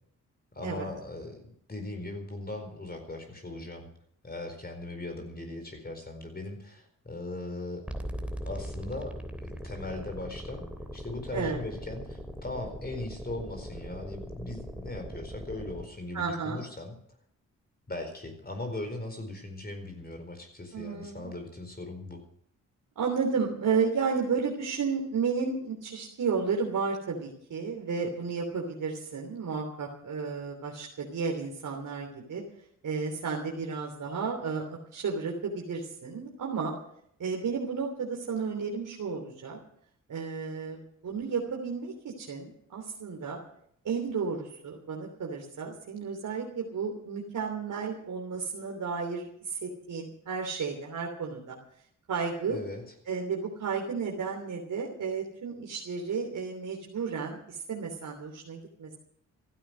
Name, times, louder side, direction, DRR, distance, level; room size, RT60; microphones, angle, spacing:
voice 1, 0.5-1.4 1.7-3.9 4.2-7.8 8.4-10.7 10.9-17.0 17.9-22.2 52.5-52.8, left 2 dB, 30° left, 4 dB, 4.5 m, -39 dB
sound 1, 7.9-15.9, equal, 5° right, 3.2 m, -40 dB
voice 2, 16.1-16.6 20.7-21.3 22.9-32.4 32.8-36.7 37.2-39.6 40.1-43.4 43.8-51.6 52.1-52.6 53.1-58.9, right 5 dB, 70° right, 0 dB, 3.3 m, -32 dB
15.5 x 12.5 x 6.4 m, 0.67 s
cardioid pair, 55°, 33 cm